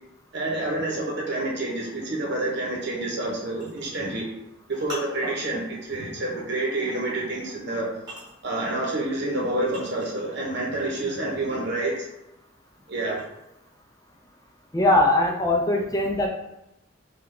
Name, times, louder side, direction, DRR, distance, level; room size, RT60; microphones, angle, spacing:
voice 1, 0.3-4.3 4.7-7.9 8.4-12.1 12.9-13.2, right 2 dB, 60° right, -2 dB, 0.9 m, -28 dB
sound 1, 3.2-10.5 10.8-13.7, equal, 25° right, 1.2 m, -43 dB
voice 2, 14.7-16.3, left 1 dB, 20° left, 0 dB, 0.5 m, -21 dB
3.3 x 2.4 x 3.7 m, 0.88 s
head